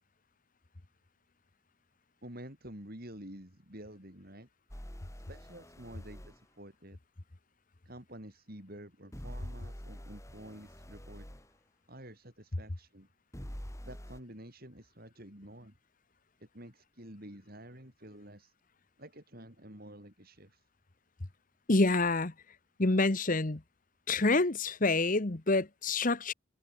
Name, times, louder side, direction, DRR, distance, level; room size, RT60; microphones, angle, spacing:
voice 1, 2.2-4.5 5.3-7.0 7.8-11.3 11.9-13.1 13.8-15.8 16.4-18.5 19.0-20.6, right 1 dB, 45° right, 6.1 m, -49 dB
sound 1, 4.7-6.4 9.1-11.5 13.3-14.2, equal, 15° left, 3.0 m, -45 dB
voice 2, 21.7-22.3 22.8-23.6 24.1-26.3, left 3 dB, 40° left, 1.1 m, -27 dB
head